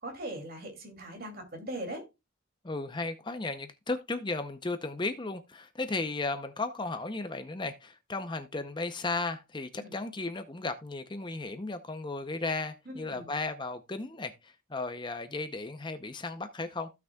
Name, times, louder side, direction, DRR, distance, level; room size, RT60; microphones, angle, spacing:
voice 1, 0.0-2.1 9.8-10.0 12.9-13.3, right 1 dB, 45° right, 2.6 m, -40 dB
voice 2, 2.6-16.9, left 3 dB, 20° left, 0.6 m, -35 dB
15.5 x 5.9 x 2.3 m
head